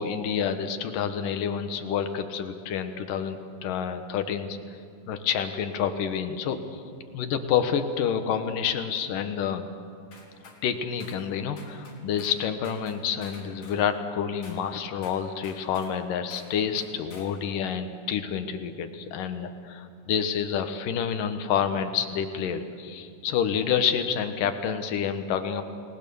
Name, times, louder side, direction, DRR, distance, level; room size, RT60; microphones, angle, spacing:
voice 1, 0.0-4.6 5.1-6.8 7.1-9.7 10.6-25.6, left 7 dB, 80° left, 8 dB, 2.9 m, -28 dB
sound 1, 10.1-10.6 11.0-11.2 11.6-12.4 12.6-13.8 14.4-14.6 15.0-16.0 16.3-16.5 16.8-17.3, left 3 dB, 65° left, 5.5 m, -49 dB
29.5 x 19.5 x 7.0 m, 2.3 s
omnidirectional pair, 3.8 m